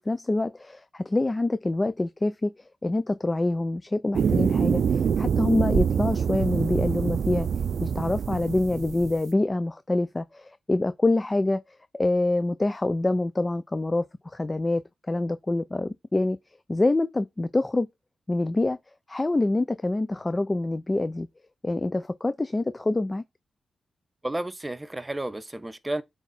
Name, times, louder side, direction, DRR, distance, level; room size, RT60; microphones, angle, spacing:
voice 1, 0.0-2.5 2.8-7.5 7.8-11.6 11.9-16.4 16.7-17.9 18.3-18.8 19.1-21.3 21.6-23.2, left 2 dB, 25° left, 0.5 m, -26 dB
sound 1, 4.1-9.2, right 7 dB, 75° right, 0.4 m, -25 dB
voice 2, 24.2-26.0, right 1 dB, 20° right, 0.8 m, -32 dB
8.3 x 3.6 x 4.1 m
cardioid pair, 65°, 0 cm